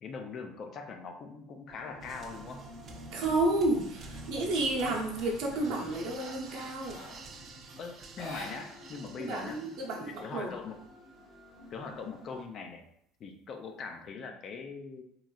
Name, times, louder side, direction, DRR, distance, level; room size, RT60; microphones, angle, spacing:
voice 1, 0.0-2.7 7.8-9.6 10.1-10.8 11.7-12.8 13.2-15.0, left 5 dB, 35° left, 5 dB, 0.3 m, -41 dB
sound 1, 1.7-12.5, left 1 dB, ahead, 0.7 m, -53 dB
sound 2, 2.0-10.5, right 3 dB, 35° right, 0.3 m, -49 dB
sound 3, 3.1-3.5 3.9-7.3 8.1-9.1 9.3-9.4 9.8-10.7, left 1 dB, 85° left, 1.4 m, -48 dB
voice 2, 3.1-7.0 9.2-10.5, right 2 dB, 60° right, -1 dB, 0.7 m, -31 dB
3.0 x 2.5 x 2.3 m, 0.71 s
cardioid pair, 140°, 0 cm